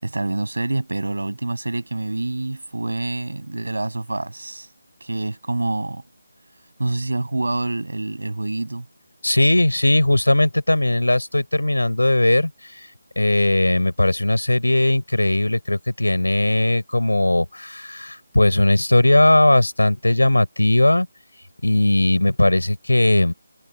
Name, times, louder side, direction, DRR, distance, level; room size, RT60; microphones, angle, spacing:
voice 1, 0.0-4.7 5.0-6.0 6.8-8.8, right 2 dB, 75° right, 6.7 m, -26 dB
voice 2, 9.2-12.9 13.2-21.1 21.6-23.3, left 1 dB, 85° left, 7.0 m, -18 dB
figure-of-eight pair, 155°, 0 cm